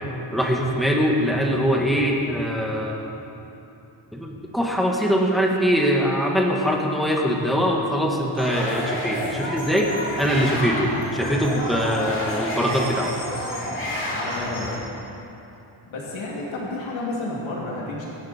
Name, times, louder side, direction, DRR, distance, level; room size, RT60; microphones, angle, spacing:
voice 1, 0.3-3.1 4.1-13.1, equal, ahead, -1 dB, 1.6 m, -22 dB
sound 1, 8.4-14.8, left 1 dB, 25° left, 2.9 m, -29 dB
voice 2, 14.1-14.8 15.9-18.1, left 2 dB, 75° left, -5 dB, 3.0 m, -31 dB
25.0 x 10.5 x 4.4 m, 2.9 s
wide cardioid pair, 175°, 48 cm